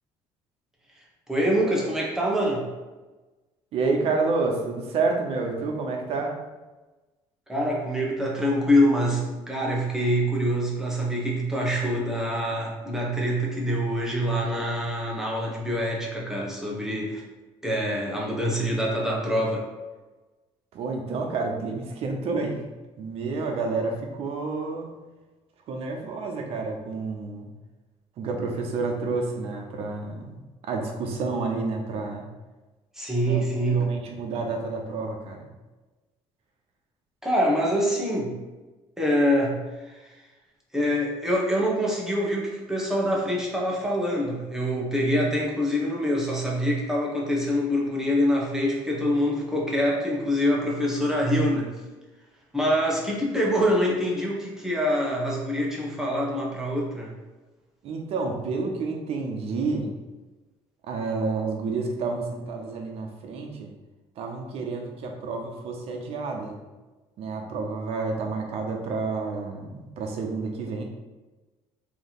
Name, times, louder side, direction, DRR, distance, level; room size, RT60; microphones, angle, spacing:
voice 1, 1.3-2.7 7.5-17.2 17.6-19.7 32.9-33.9 37.2-38.3 39.0-40.1 40.7-51.7 52.5-57.1, equal, 5° right, -4 dB, 1.0 m, -25 dB
voice 2, 3.7-6.4 20.7-22.6 23.0-24.9 25.7-27.5 28.2-32.3 33.3-33.5 33.7-35.5 57.8-59.9 60.9-63.7 64.2-66.6 67.2-70.8, right 3 dB, 65° right, 2 dB, 0.8 m, -29 dB
3.4 x 2.9 x 4.1 m, 1.2 s
cardioid pair, 115°, 11 cm